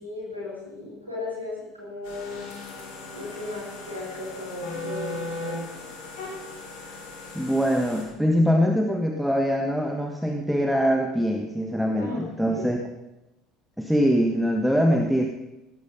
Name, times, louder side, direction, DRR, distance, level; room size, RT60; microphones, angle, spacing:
voice 1, 0.0-2.5 3.1-5.9 12.0-12.3 12.5-12.7, left 2 dB, 85° right, -5 dB, 4.6 m, -36 dB
sound 1, 2.0-8.0, left 3 dB, 60° left, 6.4 m, -37 dB
voice 2, 7.3-12.8 13.8-15.2, equal, ahead, 3 dB, 1.5 m, -23 dB
17.5 x 12.0 x 5.5 m, 0.95 s
figure-of-eight pair, 65°, 0 cm